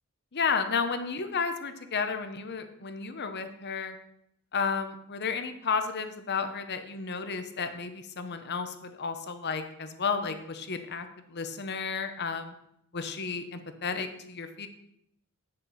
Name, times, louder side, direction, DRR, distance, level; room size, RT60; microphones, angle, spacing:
voice 1, 0.3-3.9 4.5-12.5 12.9-14.7, left 5 dB, 50° left, 8 dB, 0.9 m, -32 dB
8.6 x 6.5 x 5.7 m, 0.75 s
head